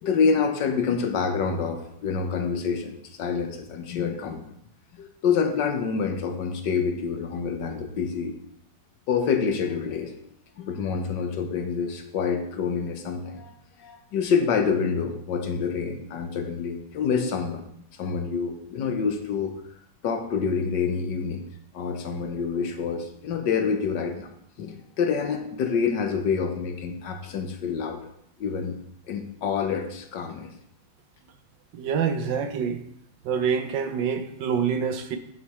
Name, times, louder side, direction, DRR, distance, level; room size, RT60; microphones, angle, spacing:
voice 1, 0.0-4.4 4.9-8.3 9.1-10.1 10.6-13.5 13.8-17.6 18.0-19.5 20.0-21.4 21.7-24.3 24.6-28.1 28.4-28.8 29.1-30.5, left 6 dB, 70° left, 5 dB, 1.5 m, -27 dB
voice 2, 31.7-32.8 33.2-35.2, right 7 dB, 75° right, 8 dB, 1.4 m, -26 dB
9.4 x 7.3 x 3.1 m, 0.73 s
omnidirectional pair, 2.1 m